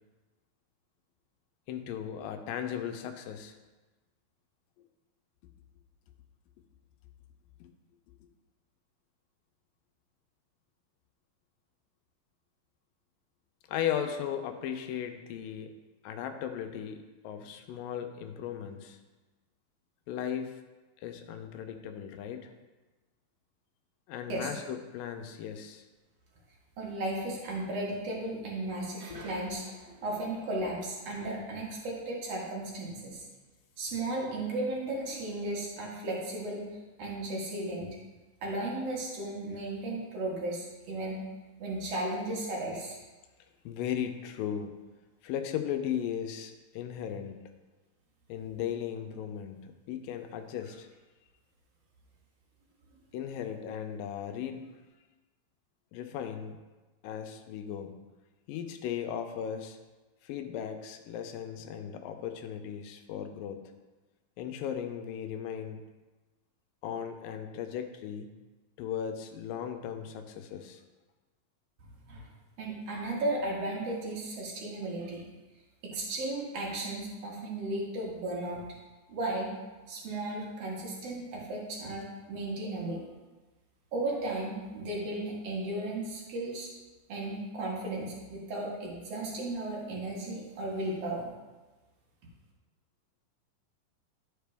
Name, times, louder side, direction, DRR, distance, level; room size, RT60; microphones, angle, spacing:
voice 1, 1.7-3.6 7.6-7.7 13.7-15.7 16.0-19.0 20.1-20.6 21.0-22.5 24.1-25.8 29.1-29.3 43.7-44.8 45.2-47.4 48.3-50.9 53.1-54.6 55.9-56.6 57.0-57.9 58.5-59.8 60.2-63.6 64.4-65.8 66.8-68.3 68.8-70.8, left 9 dB, 80° left, 6 dB, 2.3 m, -37 dB
voice 2, 26.8-33.2 33.8-36.7 37.0-37.9 38.4-41.2 41.6-43.0 72.1-72.3 72.6-75.3 75.8-78.6 79.1-79.5 79.9-83.0 83.9-86.7 87.1-91.2, right 2 dB, 50° right, -3 dB, 2.5 m, -35 dB
12.5 x 5.0 x 3.4 m, 1.2 s
omnidirectional pair, 4.1 m